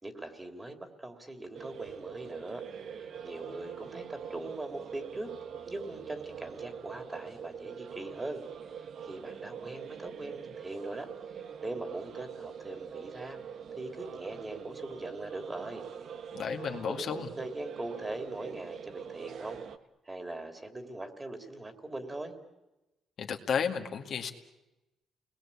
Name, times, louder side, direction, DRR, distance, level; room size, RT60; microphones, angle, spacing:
voice 1, 0.0-5.3 5.7-8.4 8.8-11.1 11.6-13.4 13.8-15.8 16.6-19.6 20.0-22.3, right 2 dB, 20° right, 7 dB, 3.3 m, -41 dB
sound 1, 1.5-19.8, right 7 dB, 65° right, 1.4 m, -43 dB
voice 2, 16.3-17.3 23.2-24.3, left 7 dB, 60° left, 3 dB, 2.3 m, -32 dB
29.5 x 21.0 x 8.6 m, 1.0 s
cardioid pair, 90°, 0 cm